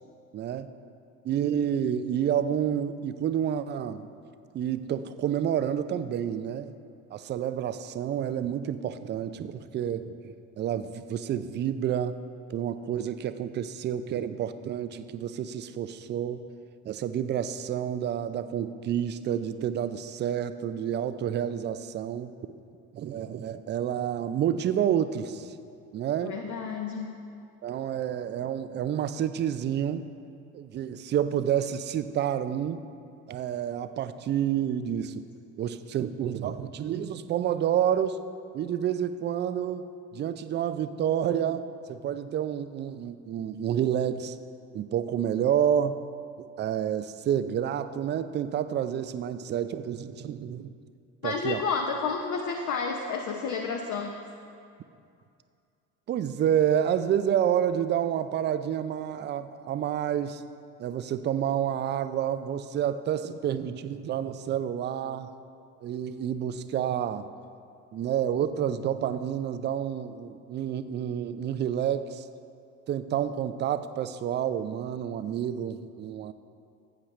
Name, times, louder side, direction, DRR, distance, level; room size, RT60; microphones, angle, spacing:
voice 1, 0.3-0.7 1.2-4.1 4.5-6.8 7.1-12.2 12.5-16.4 16.8-22.3 22.9-25.5 25.9-26.3 27.6-30.1 30.5-32.8 33.3-35.2 35.6-38.2 38.5-44.4 44.7-46.0 46.4-50.7 51.2-51.6 56.1-60.4 60.8-65.3 65.8-67.3 67.9-72.2 72.9-76.3, right 9 dB, 25° right, 11 dB, 0.4 m, -29 dB
voice 2, 26.2-27.2 51.2-54.2, left 5 dB, 40° left, 3 dB, 0.9 m, -31 dB
15.0 x 8.5 x 3.2 m, 2.4 s
hypercardioid pair, 75°, 45 cm